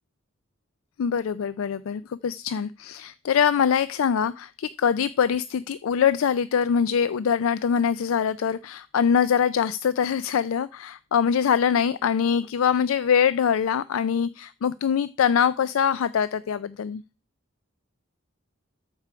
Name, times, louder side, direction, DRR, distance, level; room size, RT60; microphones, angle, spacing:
voice 1, 1.0-17.0, left 7 dB, 90° left, 0.4 m, -23 dB
13.0 x 4.8 x 4.9 m
head